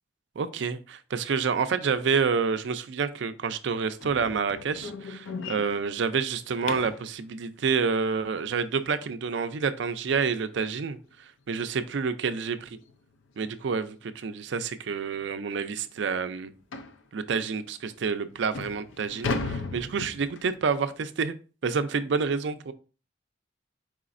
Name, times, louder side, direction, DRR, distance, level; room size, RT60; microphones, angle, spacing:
voice 1, 0.4-12.7 13.4-16.5 17.1-21.3 21.6-22.7, right 5 dB, 70° right, 11 dB, 0.4 m, -28 dB
sound 1, 4.0-7.1 9.9-10.0 10.5-10.7 11.0-11.1 11.6-11.7 12.8-13.0 13.3-13.5 14.2-14.3 14.6-14.7 15.2-15.3 16.7-17.0 17.7-17.8 18.3-20.6, left 3 dB, 85° left, 0.5 m, -36 dB
4.9 x 4.0 x 2.4 m, 0.36 s
head